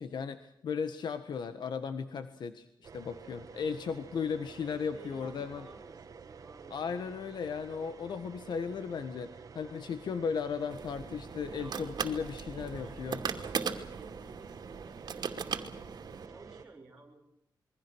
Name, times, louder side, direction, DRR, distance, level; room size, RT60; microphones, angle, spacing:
voice 1, 0.0-5.7 6.7-13.2, left 6 dB, 70° left, 10 dB, 1.5 m, -36 dB
sound 1, 2.8-16.7, right 6 dB, 50° right, 1.5 m, -50 dB
voice 2, 4.6-7.1 11.5-12.1 12.5-17.2, right 3 dB, 10° right, -4 dB, 3.7 m, -55 dB
sound 2, 10.7-16.3, right 6 dB, 65° right, 2.6 m, -38 dB
28.0 x 23.0 x 6.3 m, 0.76 s
wide cardioid pair, 175°, 8 cm